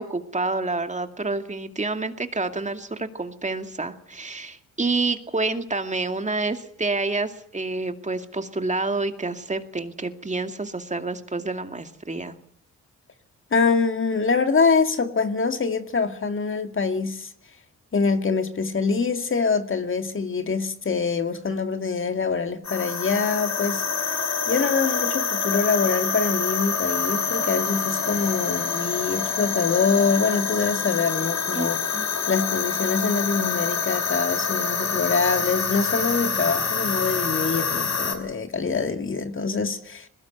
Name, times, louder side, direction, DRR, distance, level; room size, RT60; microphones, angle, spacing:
voice 1, 0.0-12.4 31.5-31.7 31.9-32.1, right 3 dB, 20° right, 2.4 m, -28 dB
voice 2, 13.5-17.3 17.9-23.8 24.5-31.8 32.3-40.1, left 4 dB, 40° left, 2.1 m, -24 dB
sound 1, 22.6-38.2, left 5 dB, 55° left, 4.9 m, -26 dB
21.0 x 18.0 x 9.3 m
cardioid pair, 80°, 32 cm